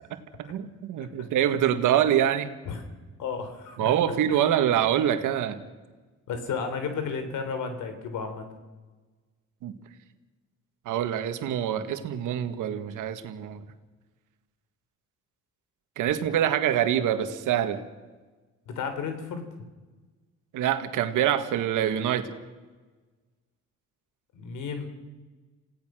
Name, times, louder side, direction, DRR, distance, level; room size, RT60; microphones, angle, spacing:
voice 1, 0.1-2.5 3.8-5.6 9.6-9.7 10.9-13.6 16.0-17.8 20.5-22.3, right 10 dB, 85° right, 8 dB, 1.9 m, -25 dB
voice 2, 3.2-3.9 6.3-8.4 18.7-19.4 24.3-24.9, left 5 dB, 85° left, 8 dB, 3.7 m, -32 dB
28.5 x 17.0 x 6.3 m, 1.3 s
cardioid pair, 90°, 30 cm